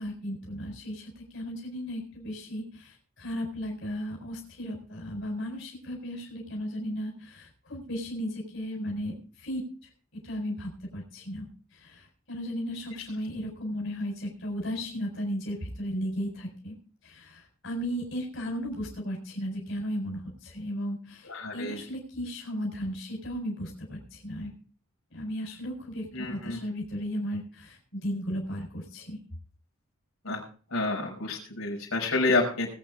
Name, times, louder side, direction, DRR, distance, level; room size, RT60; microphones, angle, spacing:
voice 1, 0.0-9.9 10.2-11.5 11.7-16.7 17.0-24.5 25.1-29.2, equal, 60° left, 0 dB, 4.5 m, -35 dB
voice 2, 21.3-21.8 26.1-26.6 30.2-30.4 30.7-32.7, left 2 dB, 80° left, 0 dB, 5.4 m, -28 dB
20.5 x 8.6 x 3.7 m, 0.41 s
head